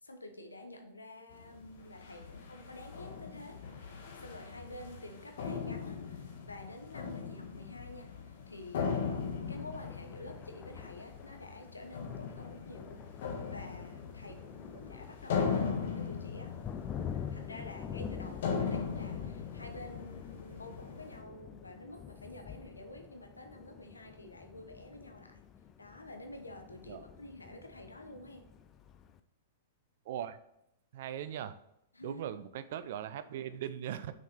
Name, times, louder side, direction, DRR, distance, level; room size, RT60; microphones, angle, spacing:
voice 1, 0.0-3.6 4.2-8.1 8.5-9.2 9.5-13.1 13.5-16.5 17.0-25.4 25.8-28.5 31.9-32.2, left 1 dB, 85° left, 5 dB, 0.9 m, -49 dB
sound 1, 1.3-21.2, left 6 dB, 55° left, 1.4 m, -39 dB
Thunder, 9.5-29.2, left 8 dB, 25° left, 0.5 m, -47 dB
voice 2, 30.1-30.4 30.9-31.6 32.0-34.1, right 10 dB, 55° right, 12 dB, 0.5 m, -39 dB
6.3 x 5.2 x 4.2 m, 0.82 s
figure-of-eight pair, 105°, 0 cm